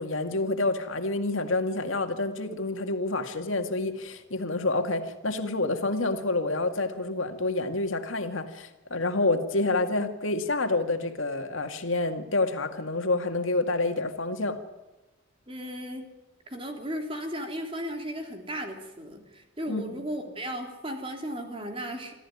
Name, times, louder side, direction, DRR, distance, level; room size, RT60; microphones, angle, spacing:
voice 1, 0.0-14.6 19.7-20.0, left 2 dB, 90° left, 6 dB, 2.1 m, -28 dB
voice 2, 15.5-16.1 16.5-22.1, equal, 25° right, 4 dB, 3.4 m, -35 dB
25.5 x 14.5 x 9.7 m, 1.1 s
head